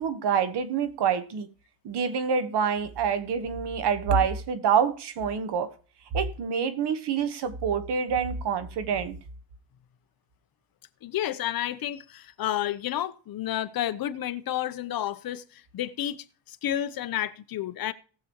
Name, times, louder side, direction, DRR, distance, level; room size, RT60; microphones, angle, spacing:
voice 1, 0.0-1.5 1.8-5.7 6.1-9.2, right 6 dB, 55° right, 1.3 m, -26 dB
voice 2, 11.0-17.9, left 12 dB, 45° left, 0.8 m, -31 dB
18.5 x 7.1 x 3.0 m
cardioid pair, 140°, 48 cm